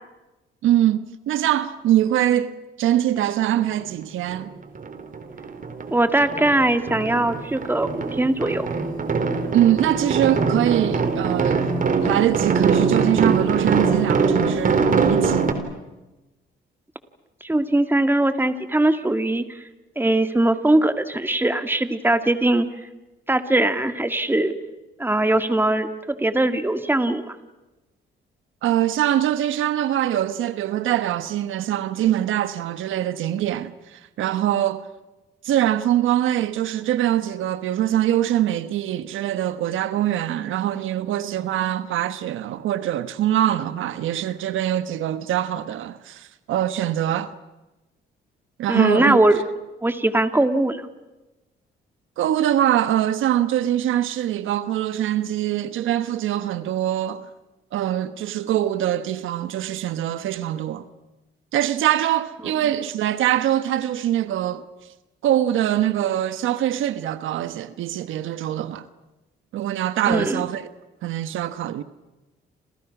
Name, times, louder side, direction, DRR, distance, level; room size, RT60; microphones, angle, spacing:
voice 1, 0.6-4.5 9.5-11.7 12.0-15.5 28.6-34.8 35.4-47.3 48.6-49.2 52.2-57.3 57.7-60.9 61.5-64.6 65.2-68.8 69.5-70.6 71.0-71.8, right 12 dB, 85° right, 1.2 m, -23 dB
sound 1, 4.3-4.4 4.8-6.0 6.2-15.5, right 5 dB, 45° right, 3.7 m, -22 dB
voice 2, 5.9-8.7 17.4-19.6 20.0-22.7 23.3-24.5 25.0-27.4 48.7-49.3 49.8-50.8 70.1-70.4, right 1 dB, 10° right, 2.3 m, -20 dB
29.5 x 27.0 x 6.1 m
cardioid pair, 90°, 20 cm